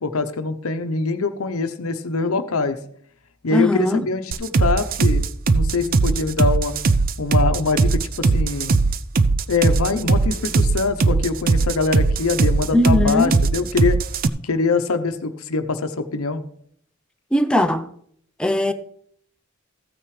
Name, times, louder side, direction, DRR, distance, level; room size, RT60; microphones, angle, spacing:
voice 1, 0.0-2.8 3.4-5.2 5.5-6.7 7.2-8.7 9.5-14.0 14.4-16.4, left 3 dB, 85° left, 0.8 m, -23 dB
voice 2, 3.5-4.1 12.7-13.3 17.3-17.9 18.4-18.7, left 1 dB, 5° left, 0.6 m, -19 dB
sound 1, 4.3-14.3, right 3 dB, 40° right, 0.5 m, -19 dB
14.5 x 9.0 x 3.2 m
head